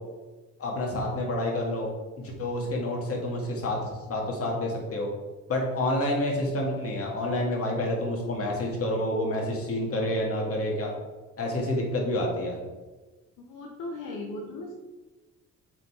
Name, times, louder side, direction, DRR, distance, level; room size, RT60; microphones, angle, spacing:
voice 1, 0.6-1.9 2.2-3.8 4.1-5.1 5.5-10.9 11.4-12.6, left 1 dB, 50° left, -1 dB, 2.1 m, -28 dB
voice 2, 13.4-14.7, left 2 dB, 90° left, 0 dB, 1.0 m, -37 dB
7.4 x 4.0 x 4.7 m, 1.2 s
cardioid pair, 90°, 30 cm